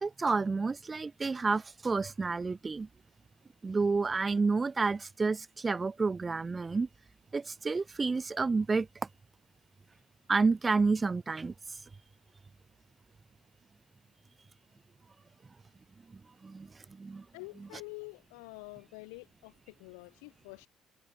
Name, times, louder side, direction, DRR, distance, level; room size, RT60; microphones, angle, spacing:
voice 1, 0.0-2.9 3.6-6.9 7.3-8.9 10.3-11.8 16.1-17.3 17.6-17.7, right 4 dB, 25° right, 0.8 m, -30 dB
voice 2, 17.3-20.7, left 33 dB, 90° left, 2.1 m, -47 dB
supercardioid pair, 75°, 0 cm